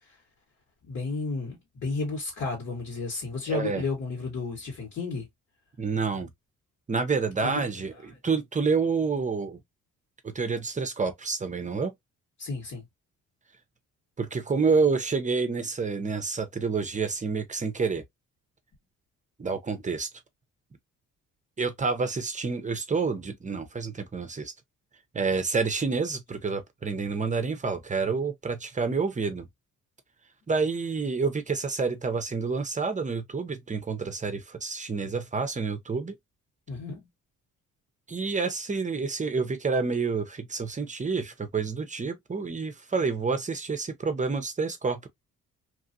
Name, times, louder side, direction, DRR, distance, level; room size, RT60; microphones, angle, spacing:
voice 1, 0.9-5.3 7.4-7.6 12.4-12.8 36.7-37.0, left 3 dB, 60° left, 1.8 m, -32 dB
voice 2, 3.5-3.8 5.8-6.3 6.9-9.6 10.2-11.9 14.2-18.0 19.4-20.1 21.6-24.5 25.1-29.5 30.5-36.1 38.1-45.1, right 4 dB, 25° right, 0.7 m, -28 dB
3.0 x 2.4 x 2.7 m
cardioid pair, 90°, 30 cm